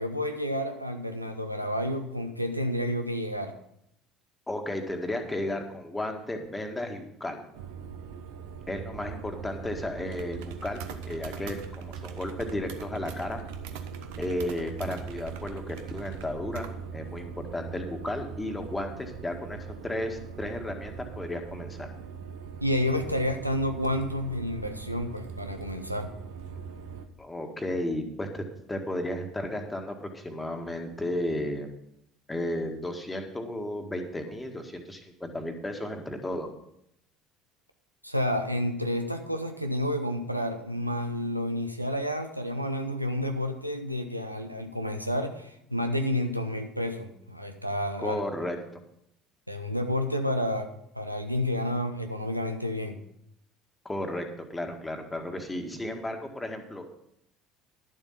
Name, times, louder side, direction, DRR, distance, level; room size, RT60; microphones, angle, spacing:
voice 1, 0.0-3.5 13.9-14.1 22.6-26.1 38.0-48.2 49.5-53.0, left 1 dB, 90° right, 6 dB, 0.7 m, -30 dB
voice 2, 4.5-7.4 8.7-13.4 14.2-21.9 27.2-31.7 32.3-36.5 48.0-48.6 53.9-56.9, left 1 dB, 10° left, 4 dB, 1.8 m, -34 dB
sound 1, 7.5-27.1, right 7 dB, 60° right, 0.8 m, -40 dB
11.5 x 7.4 x 5.8 m, 0.75 s
figure-of-eight pair, 60°, 0 cm